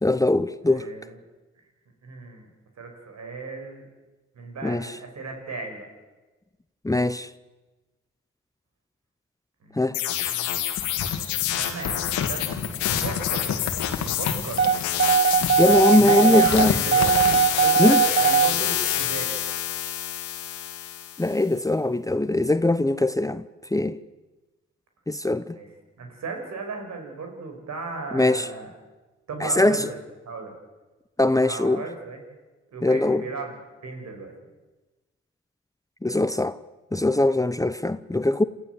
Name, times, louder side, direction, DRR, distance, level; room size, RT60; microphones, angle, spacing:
voice 1, 0.0-0.9 4.6-4.9 6.8-7.3 9.8-10.0 15.6-16.7 17.8-18.0 21.2-23.4 23.7-24.0 25.1-25.5 28.1-28.5 29.4-29.9 31.2-31.8 32.8-33.2 36.0-36.6 36.9-38.4, left 2 dB, 10° left, 0.9 m, -21 dB
voice 2, 0.6-1.2 2.0-2.5 2.8-3.8 4.4-5.9 9.6-10.5 10.8-10.9 11.3-12.6 12.9-13.5 14.0-14.7 15.9-17.1 17.5-19.3 25.5-25.7 26.0-28.7 29.3-30.0 30.3-30.5 31.3-32.2 32.7-33.6 33.8-34.3, right 4 dB, 65° right, 5.5 m, -35 dB
sound 1, 9.9-21.3, left 12 dB, 85° left, 1.9 m, -28 dB
sound 2, 10.8-14.9 15.3-17.4, left 6 dB, 65° left, 2.1 m, -31 dB
sound 3, 14.6-18.5, right 7 dB, 40° right, 1.2 m, -20 dB
28.5 x 14.5 x 7.8 m
hypercardioid pair, 40°, 29 cm